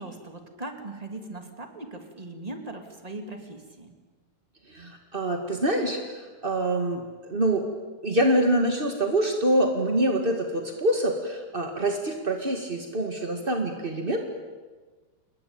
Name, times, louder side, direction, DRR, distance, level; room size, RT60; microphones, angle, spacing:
voice 1, 0.0-3.9, right 2 dB, 10° right, 5 dB, 2.0 m, -39 dB
voice 2, 4.7-7.0 7.3-7.7 8.0-14.3, right 1 dB, 35° right, 4 dB, 0.9 m, -25 dB
28.5 x 21.5 x 8.9 m, 1.3 s
omnidirectional pair, 4.5 m